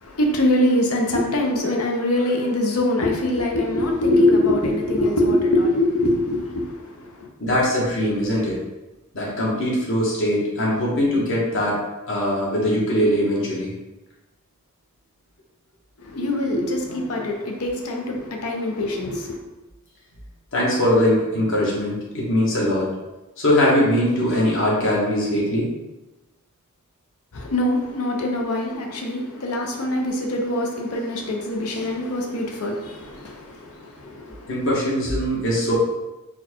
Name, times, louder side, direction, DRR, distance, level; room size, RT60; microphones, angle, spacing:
voice 1, 0.0-7.3 16.0-19.4 27.3-34.5, left 1 dB, 90° left, 1 dB, 0.8 m, -23 dB
voice 2, 7.4-8.6 9.1-11.8 12.1-13.7 20.5-22.9 23.4-25.7 34.0-34.1 34.5-35.7, left 1 dB, 65° left, -5 dB, 1.3 m, -21 dB
4.4 x 2.4 x 4.4 m, 1.1 s
head